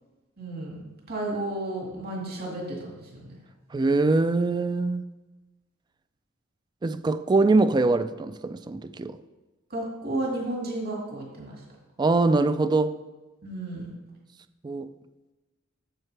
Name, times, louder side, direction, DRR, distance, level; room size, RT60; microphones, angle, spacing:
voice 1, 0.4-0.8 1.1-3.3 9.7-11.6 13.4-13.9, right 1 dB, 50° right, 2.0 m, -32 dB
voice 2, 3.7-5.0 6.8-9.2 12.0-12.9 14.6-14.9, right 3 dB, 20° right, 0.3 m, -23 dB
9.0 x 7.4 x 3.3 m
head